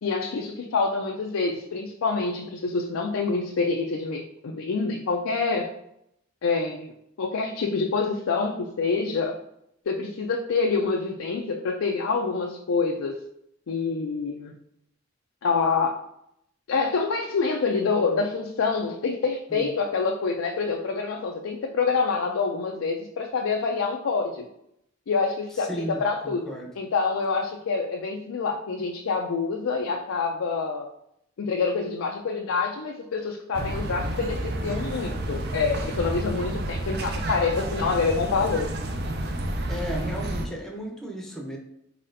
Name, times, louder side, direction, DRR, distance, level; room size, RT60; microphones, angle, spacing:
voice 1, 0.0-5.7 6.4-6.9 7.2-9.4 9.9-13.2 13.7-14.6 15.4-16.0 16.7-24.5 25.1-30.9 31.4-38.7, left 4 dB, 85° left, 1 dB, 0.4 m, -26 dB
voice 2, 25.6-26.7 39.7-41.6, equal, ahead, 0 dB, 0.7 m, -34 dB
sound 1, 33.5-40.5, right 1 dB, 55° right, 0.5 m, -30 dB
4.1 x 4.1 x 2.6 m, 0.76 s
head